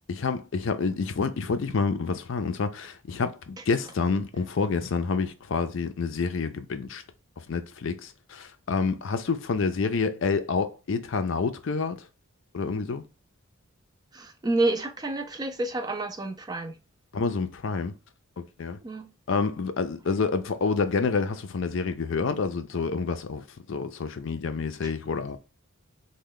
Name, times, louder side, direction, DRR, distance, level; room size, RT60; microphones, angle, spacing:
voice 1, 0.1-7.0 7.5-12.0 12.5-13.0 17.1-17.9 18.4-18.8 19.3-23.4 23.7-25.4, left 4 dB, 55° left, 0.4 m, -28 dB
voice 2, 14.1-16.7 18.8-19.1 24.8-24.9, right 2 dB, 20° right, 0.3 m, -29 dB
3.2 x 2.2 x 3.6 m
head